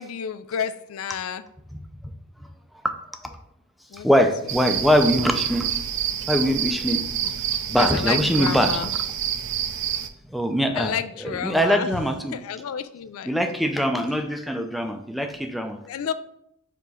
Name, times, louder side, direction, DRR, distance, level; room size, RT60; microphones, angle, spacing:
voice 1, 0.0-1.4 3.9-4.2 7.2-7.3 7.7-8.9 10.7-11.9 12.3-13.3 15.8-16.1, left 8 dB, 65° left, 12 dB, 0.3 m, -30 dB
voice 2, 3.9-5.7 6.3-7.0 7.7-8.7 10.3-10.9 11.2-12.4 13.3-15.8, equal, ahead, 5 dB, 0.4 m, -22 dB
sound 1, 4.5-10.1, right 9 dB, 55° right, 0.5 m, -27 dB
6.9 x 3.0 x 4.8 m, 0.75 s
head